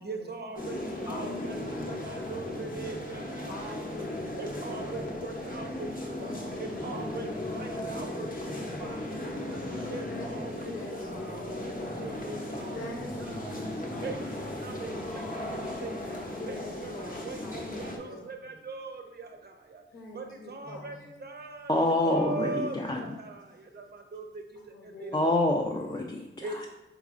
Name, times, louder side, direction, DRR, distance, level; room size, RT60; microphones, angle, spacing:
voice 1, 0.0-1.5 1.9-3.6 4.4-5.6 6.1-6.3 6.8-7.3 7.5-8.3 9.9-10.5 12.0-12.4 12.6-12.9 13.3-13.4 14.0-14.1 14.6-14.9 15.8-15.9 16.5-16.6 16.8-16.9 17.2-17.4 17.8-19.0 20.2-20.9 21.2-21.7 22.0-22.7 24.1-24.2 25.0-25.1 26.4-26.7, right 3 dB, 50° right, 4 dB, 0.6 m, -39 dB
sound 1, 0.6-18.0, left 1 dB, 40° left, 0.7 m, -36 dB
voice 2, 0.8-2.2 3.5-4.9 6.1-7.2 8.0-9.3 10.1-12.1 12.7-15.1 16.3-18.3 19.9-20.8 24.6-25.2, left 2 dB, 85° left, -1 dB, 0.9 m, -46 dB
voice 3, 21.7-23.1 25.1-26.6, left 1 dB, 20° left, 0 dB, 0.3 m, -27 dB
3.9 x 3.8 x 2.4 m, 1.0 s
wide cardioid pair, 85°, 21 cm